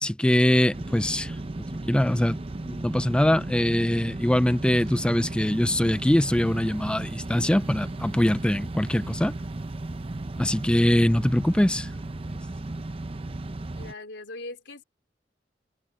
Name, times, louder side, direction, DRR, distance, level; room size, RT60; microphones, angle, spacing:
voice 1, 0.0-1.4 1.7-2.4 2.6-9.3 10.4-11.9, left 1 dB, 5° left, 0.4 m, -23 dB
sound 1, 0.7-13.9, right 2 dB, 35° right, 0.7 m, -35 dB
voice 2, 13.8-14.8, left 2 dB, 90° left, 3.6 m, -40 dB
head